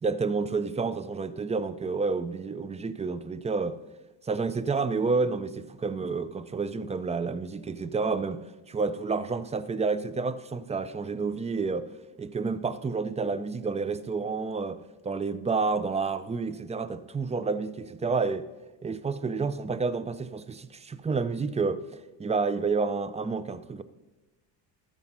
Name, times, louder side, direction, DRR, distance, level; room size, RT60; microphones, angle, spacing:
voice 1, 0.0-3.7 4.2-8.4 8.7-11.9 12.2-18.5 18.8-21.8 22.2-23.8, right 4 dB, 15° right, 0.5 m, -29 dB
13.5 x 5.3 x 5.5 m
cardioid pair, 105°, 43 cm